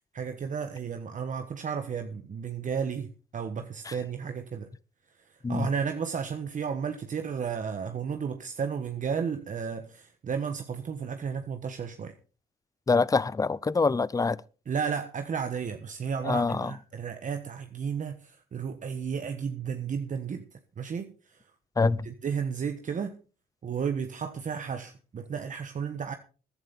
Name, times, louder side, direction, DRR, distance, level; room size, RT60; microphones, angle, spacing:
voice 1, 0.1-4.7 5.5-12.1 14.7-20.4 20.8-21.4 21.8-23.2 23.6-26.1, right 6 dB, 50° right, 1.3 m, -33 dB
voice 2, 12.9-14.4 16.2-16.7 21.8-22.1, left 4 dB, 20° left, 0.6 m, -25 dB
14.5 x 11.0 x 4.1 m
cardioid pair, 75°, 17 cm